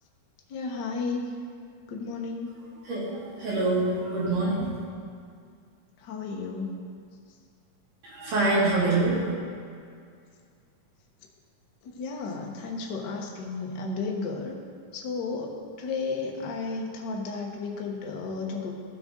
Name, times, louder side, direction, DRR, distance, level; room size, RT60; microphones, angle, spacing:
voice 1, 0.5-1.3 1.9-2.6 6.0-6.8 11.8-14.6 14.9-18.7, left 4 dB, 85° left, 0 dB, 0.9 m, -33 dB
voice 2, 2.9-4.7 8.0-9.3, right 2 dB, 80° right, -8 dB, 4.1 m, -25 dB
14.5 x 6.3 x 3.8 m, 2.2 s
omnidirectional pair, 3.6 m